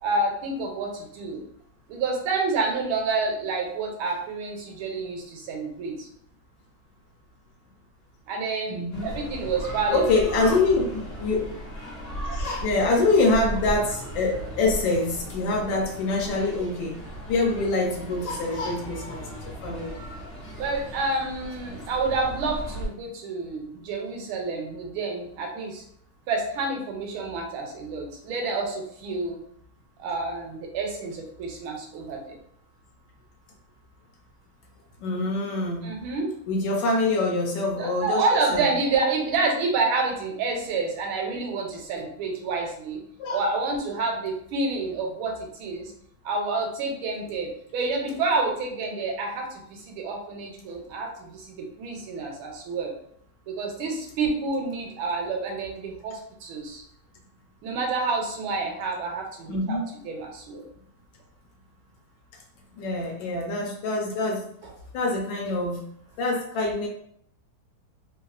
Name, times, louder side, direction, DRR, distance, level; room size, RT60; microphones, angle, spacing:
voice 1, 0.0-1.4 1.9-6.1 8.3-10.0 20.6-25.8 26.3-29.4 30.0-32.4 35.8-36.3 37.8-43.0 43.3-45.9 46.2-52.9 53.5-56.8 57.6-59.8 60.0-60.7, right 3 dB, 80° right, 2 dB, 1.4 m, -28 dB
voice 2, 8.7-9.1 9.9-11.4 12.3-17.0 17.3-19.9 21.7-21.8 35.0-35.8 36.5-38.2 38.5-38.7 43.2-43.4 59.5-59.9 62.8-64.4 64.9-65.8 66.2-66.9, left 2 dB, 75° left, 0 dB, 1.2 m, -25 dB
sound 1, 8.9-22.9, equal, 45° left, 0.8 m, -36 dB
3.5 x 2.3 x 2.3 m, 0.67 s
omnidirectional pair, 2.3 m